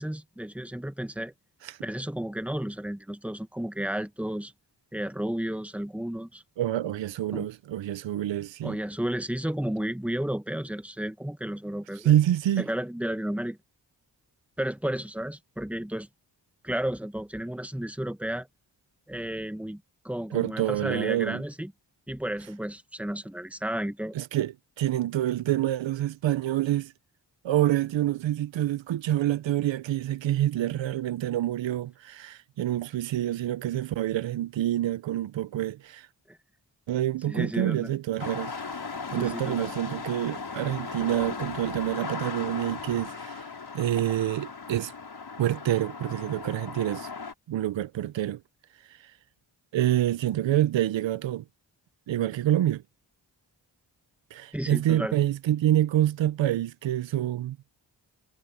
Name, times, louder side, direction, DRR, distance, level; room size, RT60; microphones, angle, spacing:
voice 1, 0.0-1.3 1.8-4.5 4.9-6.4 7.3-7.5 8.6-12.2 12.6-13.6 14.6-16.1 16.6-18.5 19.1-21.7 22.1-24.1 36.3-36.4 37.3-37.9 39.2-39.7 54.5-55.2, right 1 dB, 5° right, 1.4 m, -32 dB
voice 2, 6.6-8.8 12.0-12.7 20.3-21.4 24.1-26.9 27.4-36.1 36.9-38.6 39.1-43.4 43.7-44.9 45.4-47.1 47.5-48.4 49.7-51.4 52.1-52.8 54.3-57.6, right 13 dB, 85° right, 0.6 m, -27 dB
sound 1, 38.2-47.3, left 5 dB, 60° left, 5.6 m, -37 dB
cardioid pair, 50°, 43 cm